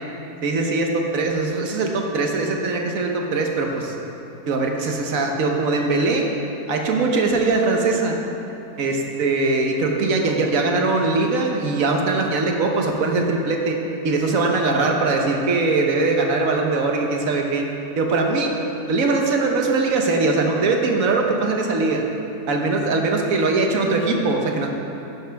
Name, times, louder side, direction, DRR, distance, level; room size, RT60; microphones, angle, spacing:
voice 1, 0.4-3.9 4.5-6.3 6.7-8.2 8.8-13.8 14.0-17.6 18.0-18.5 18.9-22.0 22.5-24.7, right 3 dB, 60° right, 2 dB, 1.3 m, -21 dB
11.0 x 10.5 x 3.5 m, 2.9 s
omnidirectional pair, 1.8 m